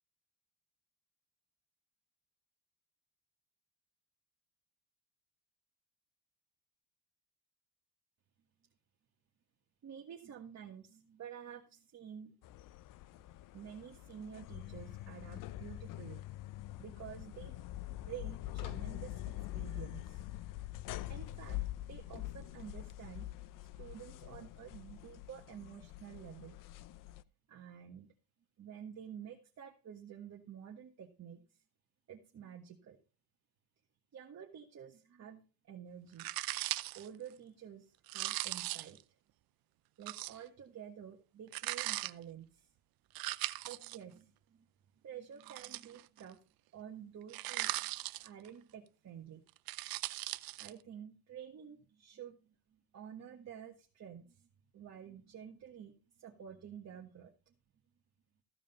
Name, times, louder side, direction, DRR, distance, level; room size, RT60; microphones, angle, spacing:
voice 1, 9.8-12.3 13.5-16.2 16.6-17.5 18.1-20.2 21.1-21.6 21.9-23.3 23.8-26.6 27.5-28.1 28.6-31.6 32.1-33.0 34.1-36.3 36.9-39.0 40.0-42.7 43.6-44.7 45.0-46.4 46.7-47.9 48.2-49.4 50.6-54.5 54.7-57.5, right 9 dB, 45° right, 1 dB, 1.5 m, -50 dB
sound 1, 12.4-27.2, left 15 dB, 60° left, 0.6 m, -45 dB
sound 2, 36.2-37.1 38.1-39.0 40.1-40.4 41.5-42.1 43.2-44.0 45.4-46.2 47.3-48.5 49.5-50.7, right 18 dB, 70° right, 0.6 m, -39 dB
14.5 x 5.0 x 5.5 m, 0.35 s
cardioid pair, 105°, 37 cm